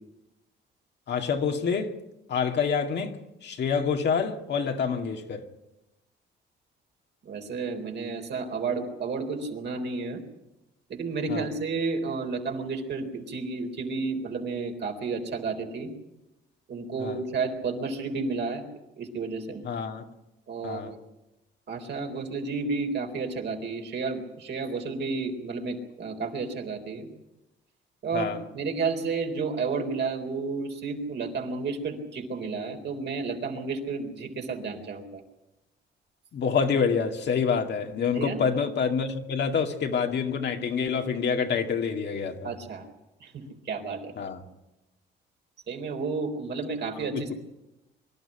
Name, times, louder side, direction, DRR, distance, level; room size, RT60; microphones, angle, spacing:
voice 1, 1.1-2.0 2.3-3.1 3.4-5.5 11.3-11.5 17.0-17.2 19.6-20.1 20.6-20.9 28.1-28.4 36.3-42.5 44.2-44.4 47.2-47.3, left 6 dB, 60° left, 2.2 m, -27 dB
voice 2, 7.2-10.2 10.9-15.9 16.7-18.6 19.0-19.6 20.5-21.0 21.7-27.1 28.0-35.2 38.1-38.4 42.4-42.9 43.2-44.1 45.7-47.3, right 4 dB, 60° right, 4.0 m, -31 dB
24.5 x 12.5 x 10.0 m
cardioid pair, 90°, 20 cm